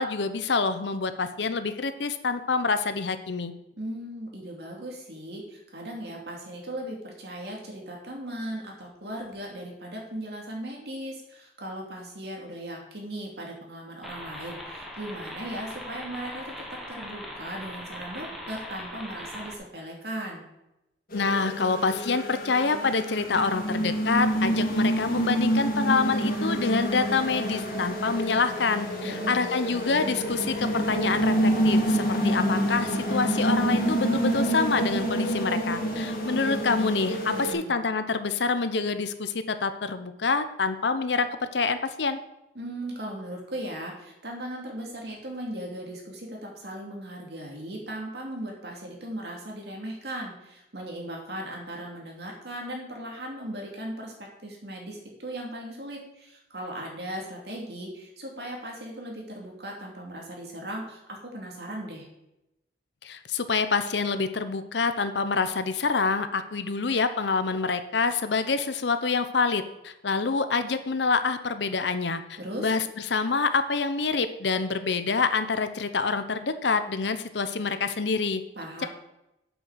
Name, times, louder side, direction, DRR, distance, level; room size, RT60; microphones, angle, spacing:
voice 1, 0.0-3.5 21.1-42.2 63.0-72.8 73.1-78.4, left 4 dB, 80° left, 10 dB, 0.8 m, -26 dB
voice 2, 3.8-16.5 16.9-20.4 29.0-29.5 37.3-37.8 42.5-54.1 54.4-62.1 72.4-72.7 78.6-78.9, right 1 dB, 65° right, -1 dB, 2.7 m, -37 dB
sound 1, 14.0-19.6, equal, ahead, 1.3 m, -40 dB
sound 2, 21.1-37.5, right 1 dB, 55° left, 2.3 m, -27 dB
8.1 x 6.2 x 6.3 m, 0.90 s
head